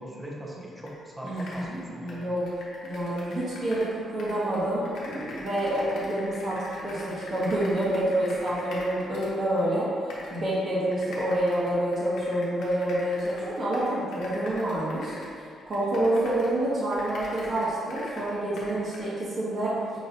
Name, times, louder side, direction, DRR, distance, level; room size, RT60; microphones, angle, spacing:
voice 1, 0.0-2.2, equal, 10° right, -3 dB, 0.8 m, -40 dB
sound 1, 0.9-1.0 1.2-3.9 4.2-9.6 10.1-10.4 10.9-16.6 16.9-19.1, left 2 dB, 75° left, 0.9 m, -43 dB
voice 2, 1.2-2.4 2.8-9.9 10.3-15.1 15.7-19.7, right 1 dB, 50° right, -8 dB, 1.3 m, -28 dB
5.4 x 3.0 x 2.5 m, 2.3 s
cardioid pair, 90°, 0 cm